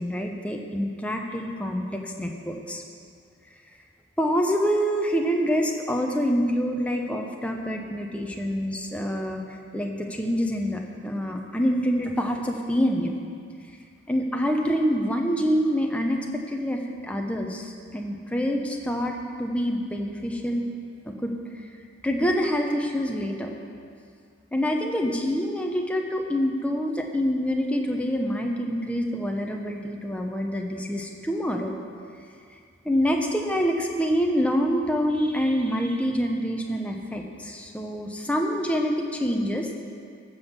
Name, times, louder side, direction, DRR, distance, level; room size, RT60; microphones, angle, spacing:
voice 1, 0.0-2.8 4.2-9.4 9.7-13.1 14.1-20.7 21.0-21.4 22.0-23.5 24.5-31.7 32.8-39.7, equal, 5° left, 1 dB, 0.7 m, -26 dB
14.0 x 5.5 x 7.3 m, 2.3 s
head